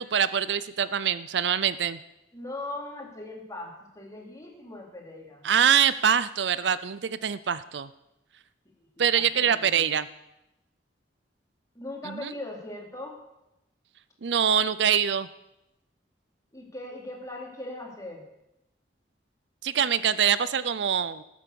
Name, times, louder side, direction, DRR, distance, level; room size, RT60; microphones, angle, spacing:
voice 1, 0.0-2.0 5.4-7.9 9.0-10.1 12.0-12.3 14.2-15.3 19.6-21.2, right 8 dB, 70° right, 16 dB, 0.5 m, -24 dB
voice 2, 2.3-5.4 8.8-8.9 9.1-9.9 11.7-13.2 16.5-18.2, left 2 dB, 20° left, -1 dB, 3.8 m, -39 dB
19.0 x 8.4 x 7.0 m, 0.91 s
head